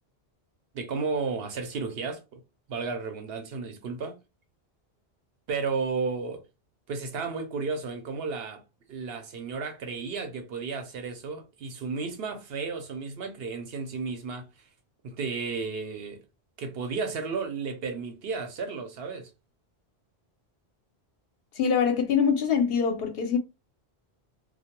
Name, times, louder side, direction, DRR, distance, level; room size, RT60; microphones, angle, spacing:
voice 1, 0.7-2.4 2.7-4.2 5.5-6.4 6.9-8.6 8.9-14.5 15.0-16.2 16.6-19.3, right 4 dB, 70° right, 0.8 m, -33 dB
voice 2, 21.5-23.4, left 6 dB, 70° left, 0.8 m, -24 dB
2.3 x 2.1 x 2.8 m
omnidirectional pair, 1.1 m